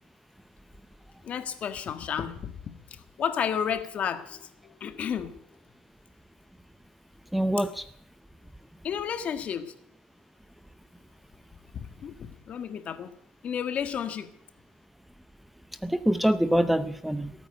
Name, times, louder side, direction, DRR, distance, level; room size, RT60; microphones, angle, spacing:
voice 1, 1.2-4.5 4.8-5.4 8.8-9.7 11.7-13.1 13.4-14.3, left 8 dB, 45° left, 11 dB, 1.5 m, -32 dB
voice 2, 7.3-7.8 15.8-17.3, equal, 5° right, 14 dB, 0.7 m, -25 dB
18.0 x 9.3 x 7.9 m, 0.73 s
cardioid pair, 120°, 3 cm